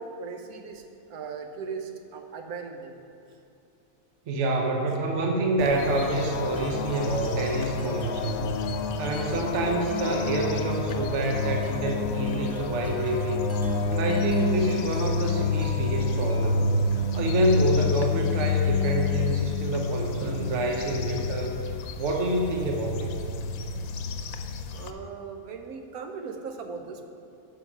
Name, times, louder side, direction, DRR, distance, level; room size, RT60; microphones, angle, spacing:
voice 1, 0.0-3.0 24.7-27.0, right 5 dB, 85° right, 5 dB, 1.3 m, -38 dB
voice 2, 4.3-8.5 9.0-13.5 13.9-21.6 22.0-23.2, right 2 dB, 60° right, 1 dB, 1.1 m, -27 dB
sound 1, 5.6-24.9, left 4 dB, 80° left, 1.1 m, -29 dB
Wind chime, 5.9-19.9, left 4 dB, 15° right, 0.7 m, -43 dB
9.4 x 5.7 x 5.5 m, 2.6 s
omnidirectional pair, 1.5 m